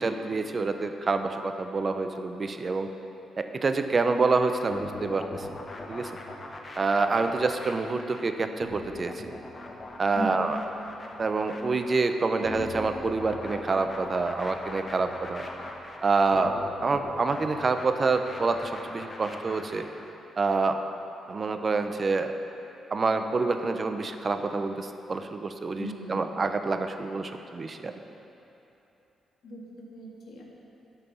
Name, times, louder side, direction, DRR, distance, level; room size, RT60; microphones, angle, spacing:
voice 1, 0.0-2.9 3.4-5.6 5.9-6.1 6.8-9.1 10.0-10.6 11.2-15.4 16.0-19.9 20.4-20.8 21.3-22.3 22.9-27.9, right 3 dB, 35° right, 7 dB, 0.6 m, -27 dB
sound 1, 4.7-20.1, left 2 dB, 35° left, 1.1 m, -40 dB
voice 2, 10.1-10.5 25.8-26.2 29.4-30.4, equal, 70° left, -3 dB, 2.1 m, -37 dB
11.0 x 5.8 x 6.9 m, 3.0 s
cardioid pair, 100°, 0 cm